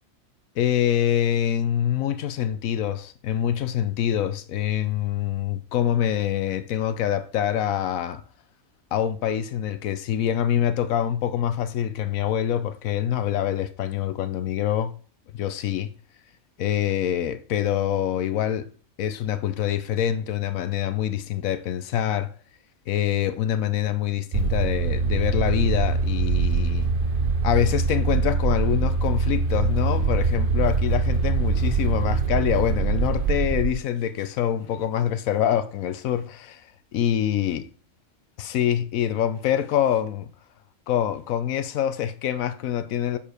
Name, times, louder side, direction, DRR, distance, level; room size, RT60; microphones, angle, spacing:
voice 1, 0.6-8.2 8.9-14.9 15.3-15.9 16.6-18.7 19.0-22.3 22.9-26.9 27.4-36.6 36.9-37.7 38.4-40.3 40.9-43.2, left 10 dB, 75° left, 1.0 m, -25 dB
sound 1, 24.3-33.7, right 4 dB, 50° right, 0.7 m, -23 dB
7.2 x 4.7 x 4.9 m
omnidirectional pair, 1.5 m